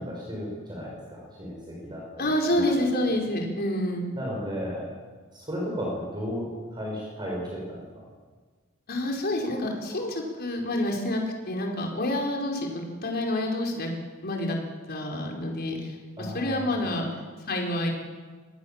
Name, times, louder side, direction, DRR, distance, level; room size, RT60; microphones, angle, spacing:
voice 1, 0.0-2.7 4.2-4.9 5.3-7.8 16.2-16.9, equal, 20° right, -4 dB, 6.4 m, -34 dB
voice 2, 2.2-4.1 8.9-13.9 14.2-14.6 14.9-17.1 17.4-17.9, left 1 dB, 50° left, 1 dB, 4.8 m, -28 dB
26.0 x 19.5 x 7.4 m, 1.4 s
head